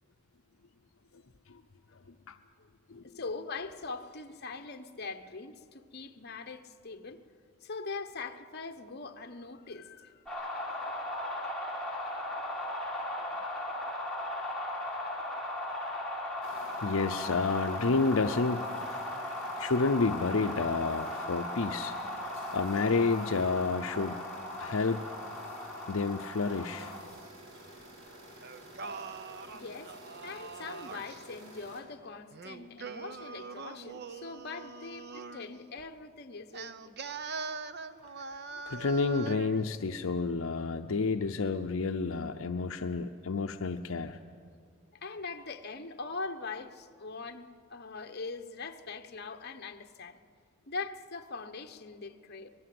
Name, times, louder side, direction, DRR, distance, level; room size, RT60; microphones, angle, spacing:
voice 1, 3.0-7.2 7.6-10.5 29.5-30.0 30.2-36.7 45.0-50.2 50.7-52.5, left 4 dB, 50° left, 1.1 m, -42 dB
sound 1, 10.3-27.0, left 1 dB, 5° left, 4.4 m, -37 dB
sound 2, 16.4-31.8, right 1 dB, 70° right, 5.8 m, -51 dB
voice 2, 16.8-18.7 19.6-21.9 22.5-24.2 24.6-25.0 25.9-26.9 38.7-44.2, left 4 dB, 70° left, 0.7 m, -30 dB
Singing, 28.4-31.2 32.3-35.5 36.5-39.6, right 4 dB, 50° right, 0.8 m, -42 dB
25.0 x 19.5 x 7.8 m
head